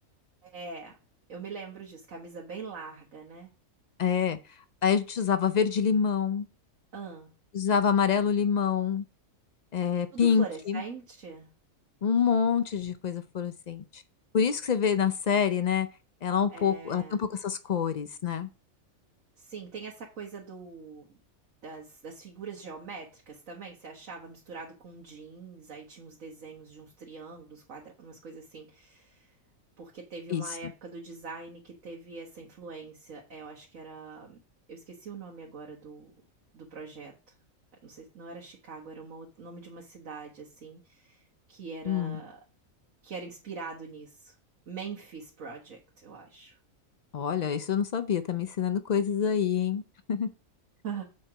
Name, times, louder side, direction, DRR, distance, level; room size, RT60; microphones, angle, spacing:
voice 1, 0.4-1.0 1.3-3.5 6.9-7.3 10.1-11.5 16.5-17.2 19.4-21.2 21.6-29.3 29.8-34.4 34.7-36.1 36.5-37.1 37.8-42.4 43.0-44.3 44.7-46.6 50.8-51.0, right 4 dB, 70° right, 1.7 m, -43 dB
voice 2, 4.0-4.4 4.8-6.5 7.5-9.0 9.7-10.8 12.0-14.0 14.3-15.9 16.2-18.5 30.3-30.4 41.9-42.2 47.1-49.8 50.1-50.3, left 7 dB, 75° left, 0.4 m, -26 dB
7.4 x 4.6 x 4.9 m
omnidirectional pair, 1.4 m